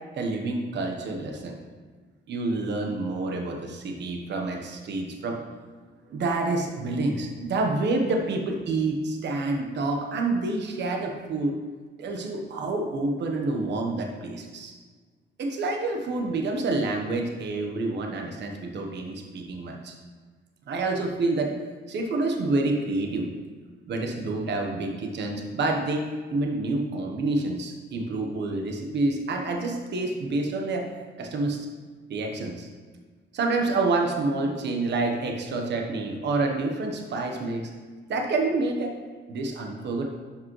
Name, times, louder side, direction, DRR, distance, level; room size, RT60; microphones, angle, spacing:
voice 1, 0.1-1.6 2.3-5.4 6.1-11.6 12.0-14.7 15.4-20.0 20.7-21.5 21.9-23.3 23.9-30.9 31.2-31.7 32.1-32.7 33.3-37.7 38.1-39.0 39.3-40.1, right 2 dB, 60° right, 2 dB, 1.1 m, -28 dB
12.0 x 5.2 x 3.2 m, 1.5 s
cardioid pair, 90°, 20 cm